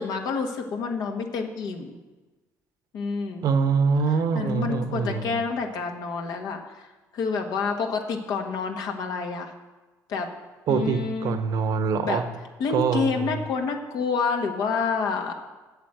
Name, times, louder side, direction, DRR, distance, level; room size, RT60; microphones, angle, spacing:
voice 1, 0.0-2.0 2.9-3.5 4.3-6.9 7.1-9.5 10.1-10.3 10.7-11.4 12.0-12.2 12.6-15.4, left 5 dB, 75° left, 3 dB, 1.4 m, -28 dB
voice 2, 3.4-5.4 10.7-12.3 12.7-13.4, right 5 dB, 65° right, 10 dB, 0.9 m, -24 dB
8.2 x 7.6 x 7.7 m, 1.2 s
cardioid pair, 90°, 7 cm